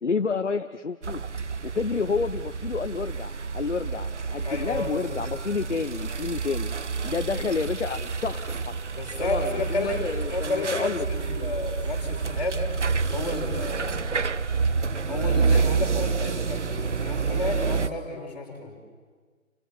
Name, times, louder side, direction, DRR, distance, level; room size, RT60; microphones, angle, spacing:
voice 1, 0.0-1.2 1.6-6.7 7.0-8.7 9.2-11.0, left 5 dB, 55° left, 9 dB, 0.9 m, -29 dB
sound 1, 1.0-17.9, right 5 dB, 55° right, 0.8 m, -28 dB
voice 2, 4.4-5.2 9.0-12.7 13.1-14.2 15.1-18.7, left 2 dB, 30° left, -1 dB, 4.8 m, -31 dB
28.5 x 19.0 x 7.2 m, 1.5 s
figure-of-eight pair, 170°, 42 cm